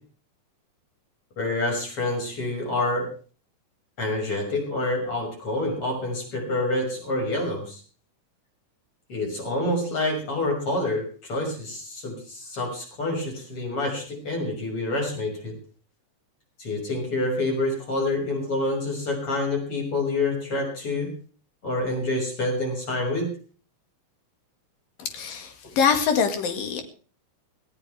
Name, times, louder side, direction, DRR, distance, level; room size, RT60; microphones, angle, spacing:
voice 1, 1.4-3.1 4.0-7.8 9.1-15.5 16.6-21.1 21.6-23.3, left 2 dB, 40° left, 1 dB, 7.2 m, -27 dB
voice 2, 25.0-26.8, left 6 dB, 90° left, 6 dB, 3.9 m, -24 dB
19.5 x 17.0 x 3.5 m, 0.40 s
omnidirectional pair, 3.9 m